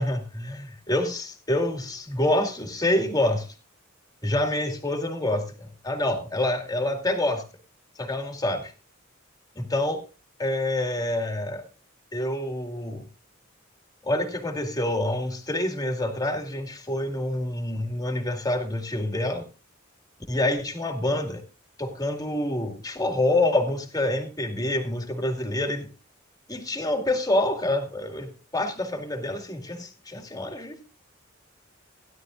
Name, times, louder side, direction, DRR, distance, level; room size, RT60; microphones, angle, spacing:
voice 1, 0.0-3.5 4.2-7.4 8.0-8.7 9.6-10.0 10.4-11.6 12.1-13.0 14.0-19.5 20.3-21.4 21.8-25.9 26.5-30.8, left 1 dB, 20° left, 5 dB, 2.1 m, -27 dB
16.0 x 11.5 x 2.5 m, 0.32 s
head